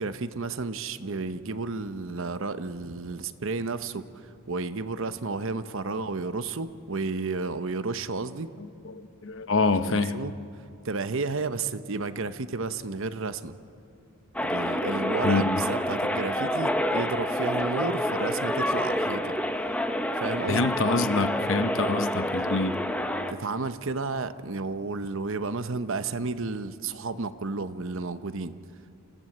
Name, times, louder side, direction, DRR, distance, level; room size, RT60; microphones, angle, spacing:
voice 1, 0.0-8.5 9.8-10.3 10.8-13.6 14.4-19.3 20.1-20.6 23.3-28.5, right 3 dB, 60° right, 12 dB, 0.9 m, -32 dB
voice 2, 8.6-10.2 15.2-15.6 20.5-22.7, left 3 dB, 60° left, 11 dB, 0.9 m, -26 dB
sound 1, 14.3-23.3, equal, 5° left, 0.8 m, -28 dB
28.0 x 16.0 x 7.9 m, 2.6 s
head